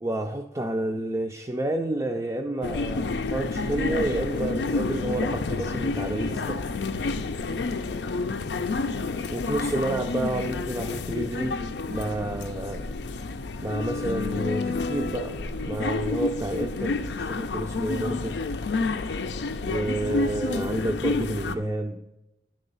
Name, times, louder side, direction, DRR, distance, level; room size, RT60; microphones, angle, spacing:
voice 1, 0.0-6.6 9.3-11.5 11.9-12.8 13.6-15.4 15.6-18.4 19.6-22.0, right 1 dB, 20° right, 2 dB, 0.4 m, -30 dB
sound 1, 2.6-21.6, left 3 dB, 75° left, 0.5 m, -29 dB
10.5 x 3.9 x 5.4 m, 0.91 s
head